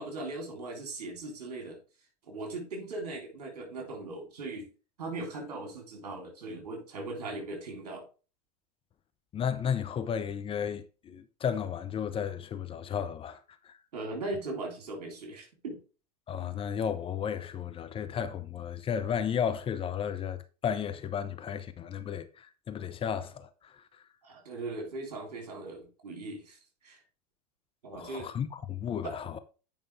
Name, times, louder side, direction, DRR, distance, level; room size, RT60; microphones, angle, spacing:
voice 1, 0.0-1.8 2.3-4.7 5.0-8.1 13.9-15.8 24.2-27.0 27.8-28.3 29.0-29.2, right 2 dB, 70° right, 3.5 m, -39 dB
voice 2, 9.3-13.4 13.6-13.7 16.3-23.8 27.9-29.4, left 8 dB, 25° left, 0.8 m, -33 dB
9.1 x 5.3 x 3.4 m
hypercardioid pair, 90°, 20 cm